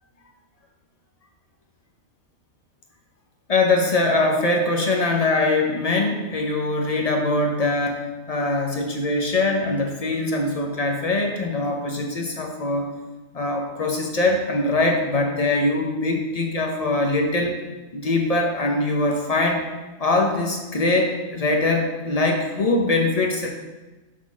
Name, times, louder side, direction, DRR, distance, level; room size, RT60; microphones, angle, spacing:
voice 1, 3.5-8.0 8.3-12.9 13.3-17.6 17.9-19.6 20.0-23.5, left 2 dB, 45° left, 1 dB, 0.5 m, -22 dB
6.0 x 4.0 x 6.0 m, 1.1 s
omnidirectional pair, 1.7 m